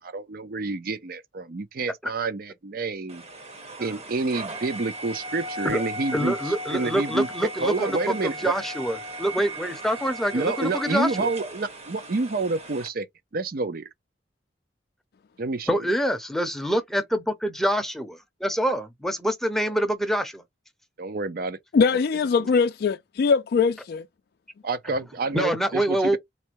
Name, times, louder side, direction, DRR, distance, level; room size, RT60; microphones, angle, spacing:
voice 1, 0.0-3.2 3.8-6.3 6.7-7.3 7.6-8.5 10.3-13.1 13.3-13.9 15.4-15.8 21.0-21.6 24.6-26.2, right 3 dB, 55° right, 0.6 m, -28 dB
sound 1, 3.1-12.9, right 1 dB, 35° right, 0.9 m, -37 dB
voice 2, 6.1-11.3 15.7-20.4 25.3-26.2, equal, ahead, 0.7 m, -26 dB
voice 3, 21.7-24.0, left 5 dB, 60° left, 0.3 m, -22 dB
4.2 x 2.2 x 4.5 m
head